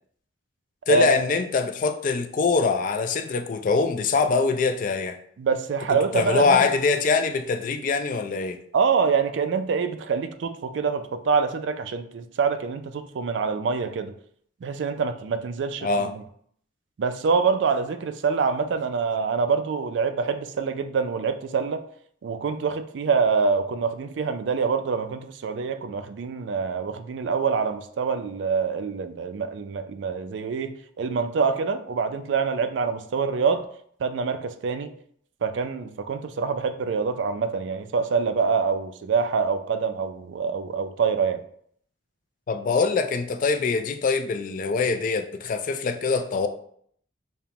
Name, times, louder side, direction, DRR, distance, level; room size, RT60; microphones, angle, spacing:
voice 1, 0.9-5.2 5.9-8.6 15.8-16.1 42.5-46.5, left 4 dB, 45° left, 0.3 m, -23 dB
voice 2, 5.4-6.6 8.7-14.1 14.6-15.9 17.0-21.8 22.2-33.7 34.0-34.9 35.4-41.4, right 5 dB, 80° right, 0.4 m, -25 dB
5.3 x 2.2 x 2.9 m
head